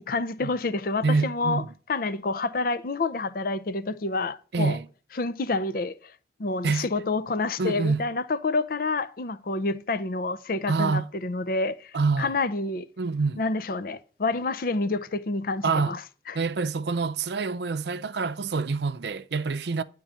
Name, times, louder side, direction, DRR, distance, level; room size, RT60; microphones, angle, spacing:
voice 1, 0.0-1.6 1.9-4.8 5.2-6.1 6.4-12.9 13.4-16.0 16.3-16.4, left 3 dB, 50° left, 0.5 m, -28 dB
voice 2, 1.0-1.7 4.5-4.9 6.6-6.9 7.6-8.1 10.7-11.1 11.9-12.3 13.0-13.4 15.6-16.0 16.3-19.8, right 4 dB, 70° right, 0.5 m, -26 dB
10.5 x 3.7 x 7.4 m
head